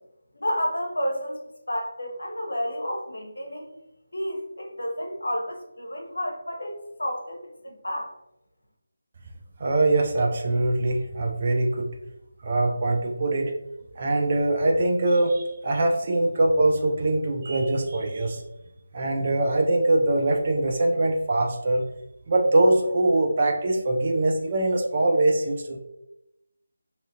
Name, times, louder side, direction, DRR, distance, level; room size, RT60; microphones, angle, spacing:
voice 1, 0.3-1.4 1.7-3.7 4.1-8.1, equal, 80° left, 1 dB, 0.8 m, -31 dB
voice 2, 9.6-11.9 12.4-13.5 14.0-18.4 18.9-21.8 22.3-25.8, right 2 dB, 40° right, 1 dB, 0.5 m, -23 dB
2.7 x 2.4 x 2.7 m, 0.86 s
figure-of-eight pair, 160°, 0 cm